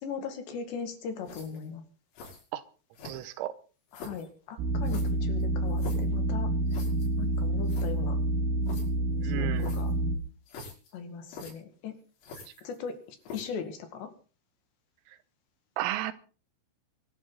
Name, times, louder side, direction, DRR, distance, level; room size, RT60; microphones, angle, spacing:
voice 1, 0.0-1.8 3.9-6.8 7.2-8.2 9.2-9.9 10.9-12.0 12.6-14.1, left 6 dB, 65° left, 4.0 m, -39 dB
sound 1, 1.2-1.7 2.1-2.5 2.9-3.4 3.9-4.3 4.8-6.1 6.7-7.1 7.4-7.5 7.7-7.9 8.6-8.9 9.6-10.0 10.5-10.9 11.3-11.5 12.2-12.9 13.2-13.6, left 3 dB, 85° left, 8.5 m, -44 dB
voice 2, 3.1-3.5 9.2-9.8 15.8-16.1, right 14 dB, 85° right, 3.7 m, -33 dB
sound 2, 4.6-10.2, right 1 dB, 70° right, 4.5 m, -28 dB
24.0 x 13.0 x 4.1 m
omnidirectional pair, 5.9 m